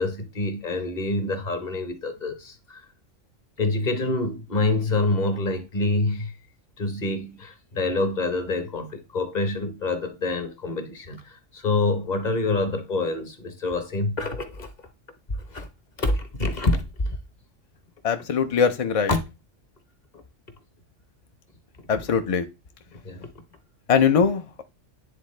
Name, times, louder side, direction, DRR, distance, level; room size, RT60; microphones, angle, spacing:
voice 1, 0.0-2.8 3.6-6.3 6.8-14.7 15.5-15.7 16.0-17.2 19.1-19.2 21.9-22.0 22.9-23.3, left 2 dB, 40° left, 1.0 m, -26 dB
voice 2, 18.0-19.1 21.9-22.4 23.9-24.6, left 6 dB, 60° left, 0.3 m, -21 dB
9.6 x 3.7 x 3.2 m
omnidirectional pair, 1.3 m